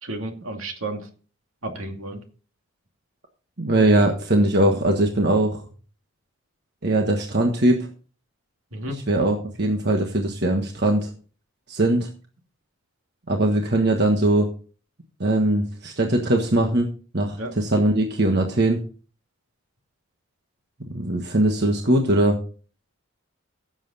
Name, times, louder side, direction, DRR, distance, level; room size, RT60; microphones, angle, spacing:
voice 1, 0.0-1.1 1.6-2.2 8.7-9.0 17.4-17.5, right 1 dB, 70° right, 4 dB, 2.5 m, -32 dB
voice 2, 3.6-5.6 6.8-7.9 8.9-11.1 11.7-12.1 13.3-14.5 15.2-16.9 17.1-18.8 20.9-22.4, right 1 dB, 50° right, 2 dB, 1.4 m, -21 dB
16.0 x 7.6 x 4.2 m, 0.39 s
head